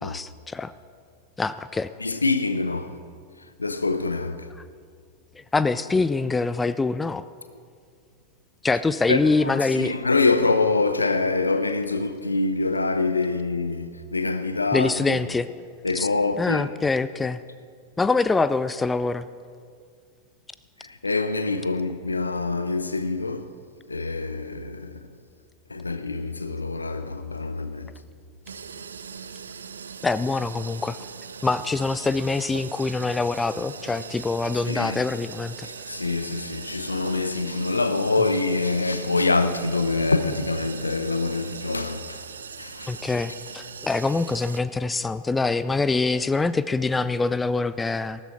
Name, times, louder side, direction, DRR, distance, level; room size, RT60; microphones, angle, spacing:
voice 1, 0.0-0.7 1.4-1.9 5.4-7.2 8.6-9.9 14.7-15.5 15.9-16.1 16.4-17.4 18.0-19.3 30.0-31.0 31.4-35.7 42.9-48.2, left 3 dB, 10° left, 0.4 m, -24 dB
voice 2, 2.0-3.0 3.6-4.5 9.1-15.2 15.8-16.7 20.8-23.5 23.9-25.1 25.7-27.9 34.7-35.0 35.6-42.2 42.6-43.0, left 3 dB, 80° left, 0.7 m, -25 dB
sound 1, 28.5-44.6, right 6 dB, 70° right, 0.5 m, -40 dB
14.5 x 13.0 x 4.3 m
figure-of-eight pair, 90°, 0 cm